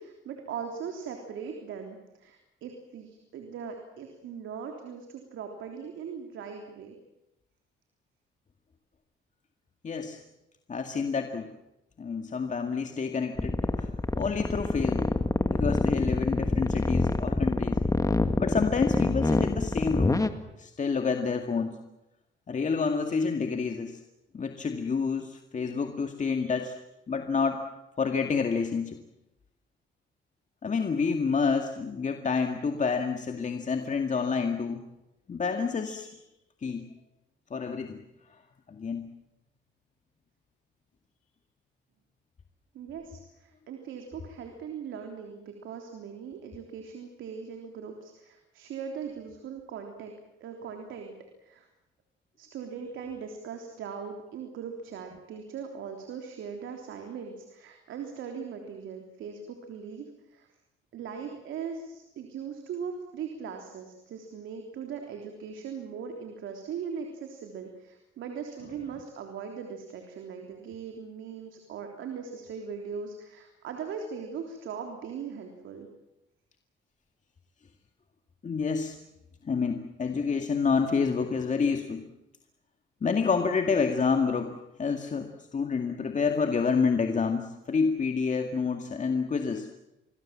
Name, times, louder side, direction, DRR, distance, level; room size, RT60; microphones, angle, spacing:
voice 1, 0.0-7.0 42.7-50.1 50.4-51.1 51.4-51.7 52.4-60.5 60.9-75.9, right 6 dB, 80° right, 3 dB, 3.5 m, -40 dB
voice 2, 9.8-10.2 10.7-11.5 12.0-13.9 14.2-15.2 15.4-17.8 18.4-20.3 20.6-21.7 22.5-24.0 24.3-26.8 27.1-27.6 28.0-29.0 30.6-34.8 35.3-36.2 36.6-36.9 37.5-38.0 38.7-39.0 78.4-79.0 79.4-82.0 83.0-84.5 84.8-89.7, left 5 dB, 40° left, 5 dB, 2.1 m, -28 dB
sound 1, 13.4-20.3, left 2 dB, 15° left, 1.9 m, -25 dB
27.0 x 21.5 x 7.6 m, 0.92 s
cardioid pair, 90°, 20 cm